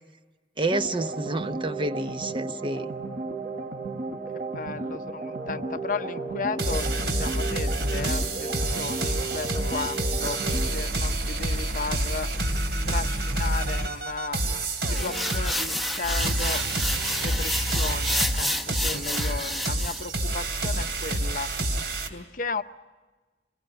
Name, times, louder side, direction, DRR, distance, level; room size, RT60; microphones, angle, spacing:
voice 1, 0.6-2.9, right 2 dB, 30° right, 0.8 m, -29 dB
sound 1, 0.7-10.7, right 2 dB, 50° right, 3.8 m, -34 dB
voice 2, 4.3-12.3 12.8-14.4 14.9-16.6 17.2-21.5 22.1-22.6, left 4 dB, 50° left, 0.8 m, -35 dB
sound 2, 6.6-22.1, right 1 dB, 70° right, 2.9 m, -28 dB
sound 3, 14.9-20.0, left 1 dB, ahead, 1.0 m, -30 dB
27.0 x 21.0 x 9.1 m
head